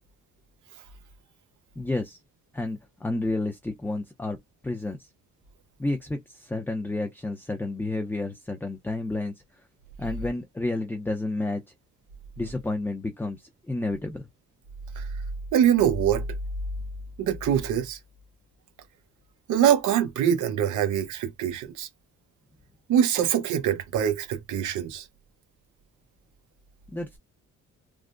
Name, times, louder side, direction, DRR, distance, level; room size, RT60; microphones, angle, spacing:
voice 1, 1.8-2.2 2.5-4.4 4.6-5.0 5.8-9.3 10.0-11.6 12.4-13.4 13.7-14.2 26.9-27.2, left 2 dB, 5° left, 0.5 m, -30 dB
voice 2, 15.5-16.2 17.2-18.0 19.5-21.9 22.9-25.1, right 9 dB, 80° right, 0.8 m, -23 dB
3.6 x 2.1 x 2.5 m
cardioid pair, 90°, 30 cm